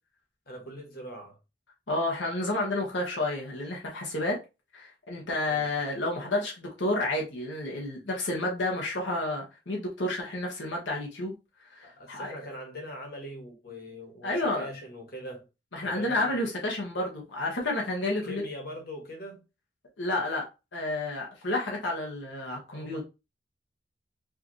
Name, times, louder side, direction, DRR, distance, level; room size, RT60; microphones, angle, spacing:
voice 1, 0.5-1.4 5.4-5.7 11.8-15.4 15.8-16.3 18.2-19.4 22.7-23.0, equal, 60° left, 1.5 m, -42 dB
voice 2, 1.9-4.4 4.7-11.3 11.7-12.3 14.2-14.7 15.7-18.4 20.0-20.4 20.7-23.0, left 2 dB, 90° left, 1.3 m, -30 dB
4.8 x 2.7 x 3.1 m
head